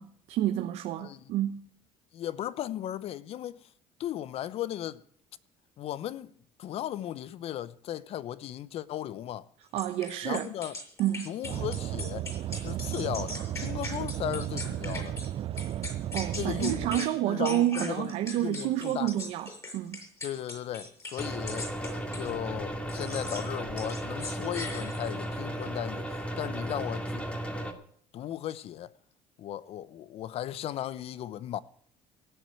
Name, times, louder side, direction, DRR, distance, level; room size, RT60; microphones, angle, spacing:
voice 1, 0.0-1.6 9.7-10.5 11.0-11.3 16.1-20.0, right 13 dB, 70° right, 1.0 m, -29 dB
voice 2, 2.1-3.7 4.0-5.0 5.8-9.5 10.2-10.8 11.2-12.3 12.6-15.2 16.4-19.1 20.2-21.7 22.1-26.1 26.4-27.3 28.1-28.9 29.4-31.6, left 12 dB, 55° left, 0.8 m, -36 dB
sound 1, 9.8-15.3 15.6-17.1 17.4-22.3 22.9-23.5 23.8-25.2, left 2 dB, 25° left, 7.2 m, -40 dB
sound 2, 11.4-17.0, right 12 dB, 50° right, 0.5 m, -34 dB
sound 3, 21.2-27.7, right 1 dB, 10° left, 2.2 m, -35 dB
17.0 x 7.9 x 9.3 m
cardioid pair, 105°, 12 cm